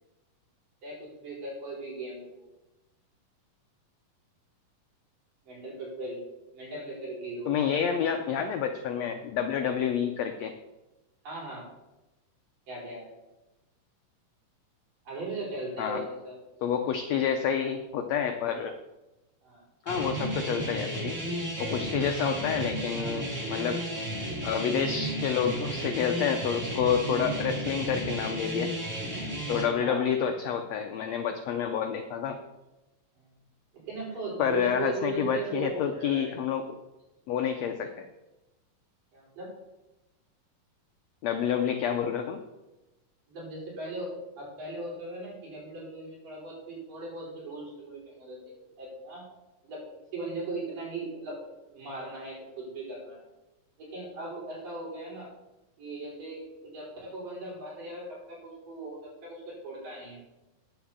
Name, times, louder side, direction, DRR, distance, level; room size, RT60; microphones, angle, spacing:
voice 1, 0.8-2.5 5.4-6.2 6.5-7.7 11.2-11.7 12.7-13.2 15.0-16.3 19.4-19.6 29.8-30.0 33.2-33.3 33.9-36.4 39.1-39.5 43.3-49.2 49.6-49.9 50.1-51.4 51.7-53.2 53.8-55.3 55.8-60.2, right 2 dB, 70° right, -6 dB, 6.5 m, -38 dB
voice 2, 7.5-10.5 15.8-16.0 16.6-18.7 19.9-21.2 21.6-23.8 24.4-28.7 29.5-32.4 34.4-36.7 37.3-38.0 41.2-42.4, left 7 dB, 85° left, 6 dB, 1.5 m, -29 dB
sound 1, 19.9-29.6, right 1 dB, 25° right, 2.5 m, -33 dB
9.8 x 7.4 x 7.2 m, 1.0 s
omnidirectional pair, 4.0 m